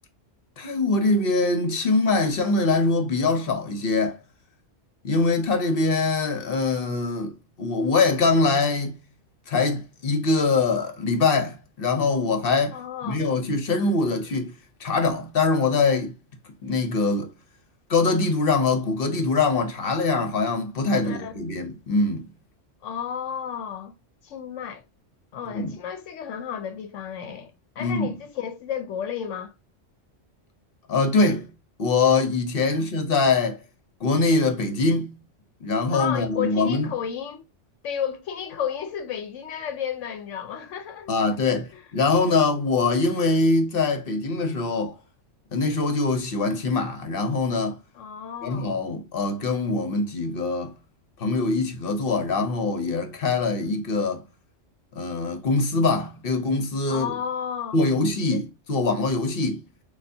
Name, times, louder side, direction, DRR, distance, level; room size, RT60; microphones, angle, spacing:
voice 1, 0.6-4.2 5.0-7.3 7.6-9.0 9.5-12.8 13.0-14.5 14.8-16.1 16.6-17.3 17.9-22.3 25.5-25.7 27.8-28.1 30.9-31.5 31.8-33.6 34.0-35.2 35.6-36.9 41.1-45.0 45.5-47.8 48.4-50.7 51.2-54.2 55.0-57.1 57.7-59.6, left 3 dB, 55° left, 0.9 m, -23 dB
voice 2, 12.7-13.2 21.0-21.3 22.8-23.9 24.2-24.8 25.3-29.5 32.8-32.9 35.9-37.4 37.8-41.3 41.7-41.8 42.3-42.4 47.9-48.7 56.9-57.8 58.3-58.4, left 8 dB, 80° left, 0.9 m, -32 dB
6.6 x 2.4 x 2.6 m
omnidirectional pair, 1.3 m